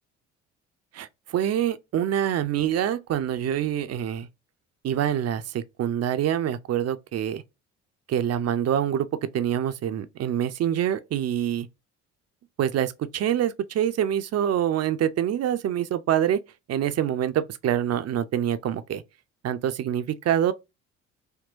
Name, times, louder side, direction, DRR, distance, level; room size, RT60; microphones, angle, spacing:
voice 1, 0.9-4.3 4.8-7.4 8.1-9.1 9.3-11.7 12.6-16.4 16.7-19.0 19.4-20.5, right 10 dB, 45° right, 0.6 m, -25 dB
3.6 x 2.2 x 2.5 m
hypercardioid pair, 55°, 37 cm